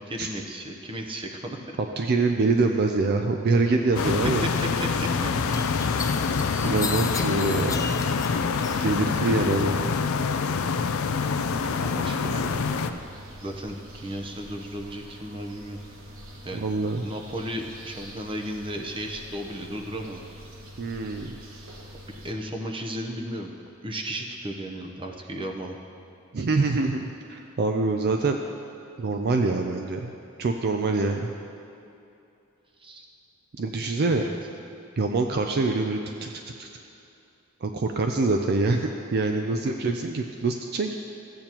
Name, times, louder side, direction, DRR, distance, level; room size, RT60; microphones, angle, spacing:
voice 1, 0.0-1.6 4.8-5.1 5.9-6.1 11.5-13.0 13.4-15.8 16.4-16.7 17.0-20.2 22.1-23.5 23.8-25.8 32.8-33.1 34.1-34.3 39.6-39.7, equal, 25° right, 3 dB, 0.8 m, -35 dB
voice 2, 1.8-4.5 6.6-8.0 8.8-10.0 16.5-17.0 20.8-21.4 26.3-28.4 29.0-30.1 30.4-31.3 33.6-34.2 35.0-36.3 36.6-36.7 37.6-40.9, right 3 dB, 50° right, 4 dB, 0.4 m, -25 dB
sound 1, 3.9-12.9, left 5 dB, 85° left, 0.4 m, -26 dB
sound 2, 5.5-9.2 9.5-10.3, left 5 dB, 15° left, 0.4 m, -36 dB
sound 3, 12.4-22.3, equal, 75° right, 1.2 m, -45 dB
14.0 x 8.6 x 2.9 m, 2.7 s
head